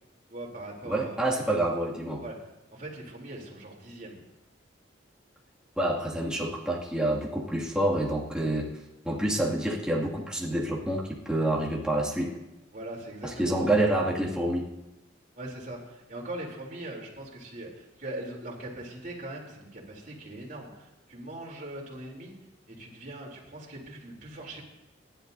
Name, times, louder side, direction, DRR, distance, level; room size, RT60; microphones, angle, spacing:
voice 1, 0.3-1.6 2.2-2.3 2.7-4.2 12.7-13.8 15.3-22.3 22.7-24.6, right 1 dB, 45° right, -2 dB, 3.4 m, -41 dB
voice 2, 0.8-2.2 5.8-8.7 9.0-12.4 13.2-14.7, right 1 dB, 5° right, -4 dB, 2.3 m, -27 dB
27.5 x 11.5 x 2.7 m, 0.96 s
head